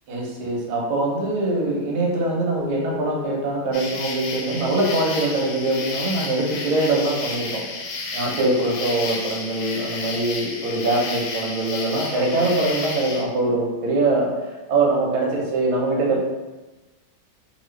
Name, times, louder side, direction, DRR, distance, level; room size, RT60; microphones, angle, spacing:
voice 1, 0.1-7.6 8.1-14.3 14.7-16.2, right 2 dB, 85° right, -3 dB, 1.6 m, -23 dB
sound 1, 2.5-5.1, left 9 dB, 35° left, 0.7 m, -38 dB
sound 2, 3.7-13.2, left 3 dB, 85° left, 1.5 m, -32 dB
3.5 x 2.4 x 3.2 m, 1.1 s
omnidirectional pair, 2.3 m